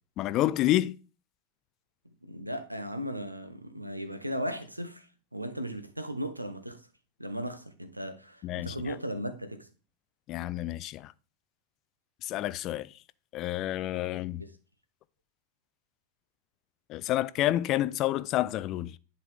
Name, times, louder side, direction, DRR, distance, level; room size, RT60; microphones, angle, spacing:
voice 1, 0.2-1.0 8.4-9.0 10.3-11.1 12.2-13.0 13.3-14.4 16.9-19.0, left 14 dB, 35° left, 0.3 m, -29 dB
voice 2, 2.2-6.9 7.2-9.7 14.4-14.5, equal, 85° right, 0.8 m, -37 dB
10.5 x 4.1 x 3.5 m
figure-of-eight pair, 90°, 0 cm